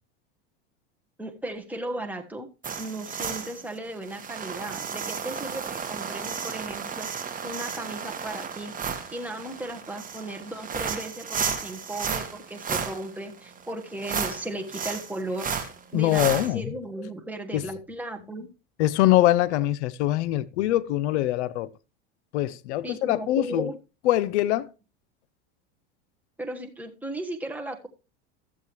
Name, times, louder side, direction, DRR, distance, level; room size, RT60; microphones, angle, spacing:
voice 1, 1.2-2.5 2.8-7.1 7.4-8.7 9.1-15.5 15.9-18.5 22.8-23.8 26.4-27.9, right 1 dB, 5° right, 1.3 m, -36 dB
sound 1, 2.6-16.5, right 6 dB, 25° right, 1.6 m, -33 dB
voice 2, 15.9-16.7 17.5-17.6 18.8-21.7 22.3-23.7 24.0-24.7, left 14 dB, 80° left, 0.7 m, -23 dB
13.0 x 7.5 x 3.1 m
supercardioid pair, 105°, 34 cm